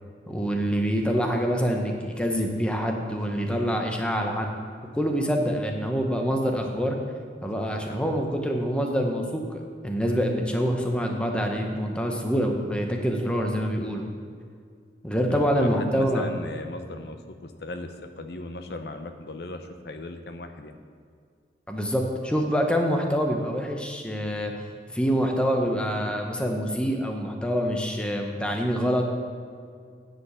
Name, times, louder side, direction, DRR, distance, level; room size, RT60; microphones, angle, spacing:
voice 1, 0.3-4.5 4.9-7.0 7.4-14.0 15.0-16.3 21.7-24.7 24.9-29.0, equal, 5° left, 2 dB, 0.8 m, -26 dB
voice 2, 7.6-8.0 15.3-20.8, left 2 dB, 65° left, 7 dB, 0.7 m, -37 dB
9.8 x 5.2 x 8.1 m, 2.1 s
head